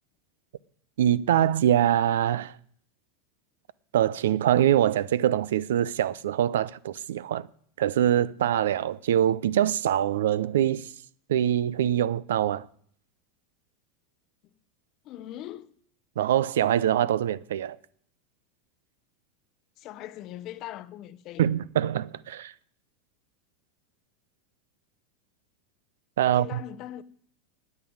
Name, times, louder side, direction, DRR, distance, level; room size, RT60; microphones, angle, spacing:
voice 1, 1.0-2.5 3.9-7.5 7.8-10.9 11.3-12.7 16.2-17.8 21.4-22.5 26.2-26.6, right 11 dB, 85° right, 0.5 m, -24 dB
voice 2, 15.1-15.7 19.8-21.5 26.2-27.0, left 13 dB, 45° left, 0.7 m, -40 dB
9.5 x 8.9 x 8.6 m
supercardioid pair, 125°, 0 cm